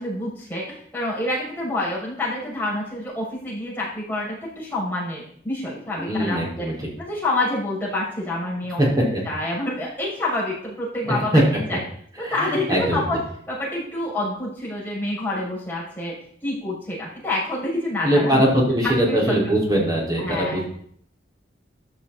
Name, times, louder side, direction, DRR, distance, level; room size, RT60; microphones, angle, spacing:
voice 1, 0.0-6.7 7.0-8.8 9.3-11.8 12.2-13.2 13.5-18.5 18.8-19.4 20.2-20.6, left 1 dB, 10° left, -6 dB, 7.0 m, -27 dB
voice 2, 6.0-6.9 8.8-9.2 11.0-11.4 12.2-13.0 18.0-20.6, equal, 20° right, -3 dB, 5.1 m, -21 dB
14.0 x 12.0 x 4.3 m, 0.62 s
head